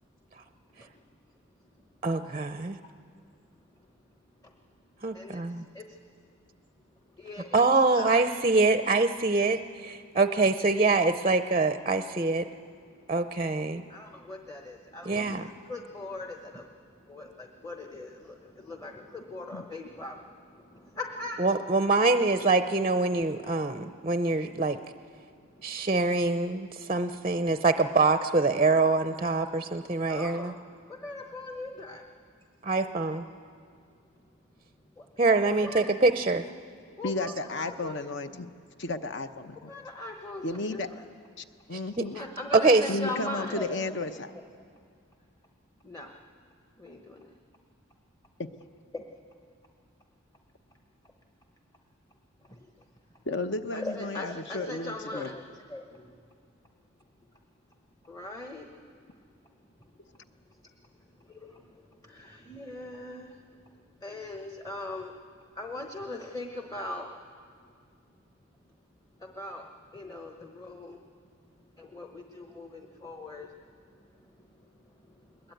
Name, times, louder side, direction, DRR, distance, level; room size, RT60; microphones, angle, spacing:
voice 1, 0.7-1.1 1.8-1.9 3.6-3.9 4.4-5.4 5.8-5.9 6.9-8.2 12.9-13.1 13.9-21.4 25.2-25.9 30.1-30.6 30.8-32.0 34.9-35.1 35.4-35.9 37.0-37.9 39.6-41.0 41.7-44.4 45.8-46.1 46.8-47.3 48.9-49.0 52.4-52.7 53.7-56.3 58.0-58.7 59.1-59.2 59.8-60.6 61.1-67.1 67.8-67.9 69.2-71.1 71.4-75.5, left 2 dB, 15° left, 3 dB, 1.0 m, -41 dB
voice 2, 2.0-2.8 5.0-5.6 7.5-12.5 13.1-13.8 15.0-15.5 21.4-24.8 25.6-30.5 32.6-33.3 35.2-36.5 41.7-42.0 42.5-42.8, right 3 dB, 25° right, 9 dB, 0.5 m, -25 dB
voice 3, 37.0-38.5 38.8-39.7 40.4-40.9 41.4-42.2 42.9-44.3 48.4-48.5 53.3-55.3, left 2 dB, 55° left, 9 dB, 1.0 m, -33 dB
21.0 x 21.0 x 9.1 m, 2.2 s
head